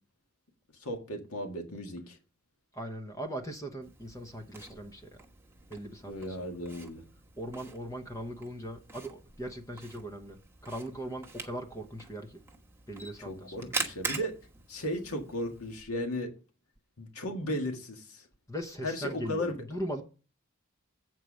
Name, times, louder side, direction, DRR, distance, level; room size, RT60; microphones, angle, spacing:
voice 1, 0.8-2.2 6.1-7.0 13.2-14.3 14.7-16.3 17.0-18.3 18.8-19.6, left 1 dB, 90° left, 1.7 m, -35 dB
voice 2, 2.7-5.2 5.7-6.5 7.4-10.4 10.6-12.4 12.9-13.7 18.5-20.0, equal, 15° left, 0.9 m, -39 dB
Camera, 3.8-15.8, right 3 dB, 10° right, 1.2 m, -43 dB
8.2 x 4.6 x 6.3 m
head